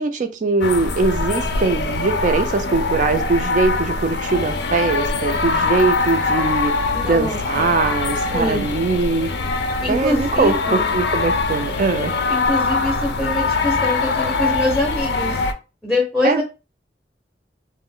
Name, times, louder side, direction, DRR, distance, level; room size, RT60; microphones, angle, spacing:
voice 1, 0.0-6.7 7.0-9.3 9.9-12.1 16.2-16.4, right 3 dB, 45° right, 8 dB, 0.4 m, -21 dB
sound 1, 0.6-15.5, left 3 dB, 70° left, 0.4 m, -22 dB
voice 2, 6.9-7.7 8.3-8.7 9.8-10.9 12.3-15.4 15.8-16.4, left 1 dB, 5° left, -2 dB, 0.6 m, -24 dB
2.3 x 2.1 x 3.7 m, 0.30 s
head